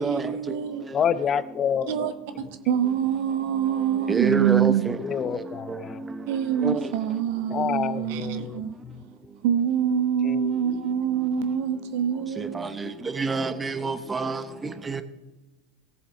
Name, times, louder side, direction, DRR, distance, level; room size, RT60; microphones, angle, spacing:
voice 1, 0.0-0.9 1.9-5.0 6.3-8.8 9.4-12.8, right 9 dB, 60° right, 1.0 m, -25 dB
voice 2, 0.9-2.1 5.0-6.1 7.5-8.6 8.9-9.0 10.2-10.6 12.8-12.9, left 8 dB, 30° left, 0.5 m, -28 dB
voice 3, 4.1-4.7 6.6-6.8 13.2-14.4, right 4 dB, 15° right, 1.0 m, -25 dB
17.5 x 7.2 x 4.0 m
figure-of-eight pair, 80°, 0 cm